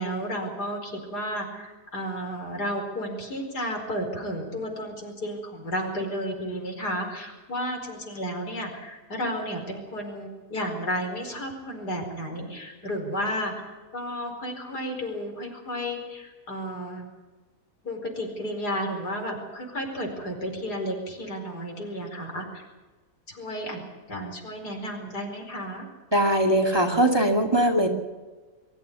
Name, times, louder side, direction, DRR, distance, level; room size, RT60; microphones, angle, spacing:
voice 1, 0.0-13.5 13.9-17.1 17.8-22.6 23.3-25.9, equal, 85° left, 3 dB, 5.2 m, -32 dB
voice 2, 26.1-27.9, right 1 dB, 15° right, 3 dB, 2.3 m, -21 dB
23.0 x 14.5 x 9.5 m, 1.3 s
omnidirectional pair, 1.7 m